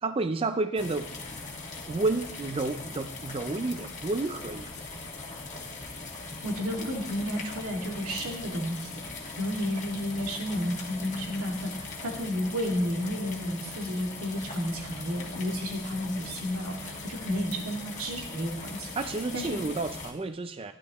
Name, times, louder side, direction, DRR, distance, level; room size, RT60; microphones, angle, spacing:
voice 1, 0.0-1.1 1.9-4.7 19.0-20.7, right 3 dB, 25° right, 8 dB, 0.4 m, -30 dB
sound 1, 0.8-20.1, left 3 dB, 30° left, 1.5 m, -40 dB
voice 2, 6.4-9.0 9.4-18.9 19.3-19.6, equal, 70° right, 1 dB, 2.1 m, -32 dB
15.0 x 10.5 x 3.0 m, 0.81 s
head